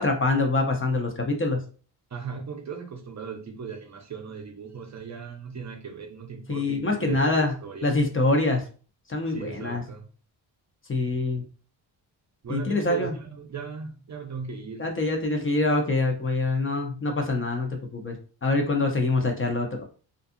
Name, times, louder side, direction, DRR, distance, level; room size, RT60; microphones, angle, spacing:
voice 1, 0.0-1.6 6.5-7.5 7.8-8.7 9.1-9.8 10.9-11.4 12.5-13.1 14.8-18.2 18.4-19.8, left 2 dB, 30° left, 0.6 m, -25 dB
voice 2, 2.1-7.9 9.3-10.0 12.4-14.9 16.2-16.4, right 6 dB, 40° right, 0.6 m, -37 dB
2.5 x 2.3 x 2.6 m
cardioid pair, 70°, 45 cm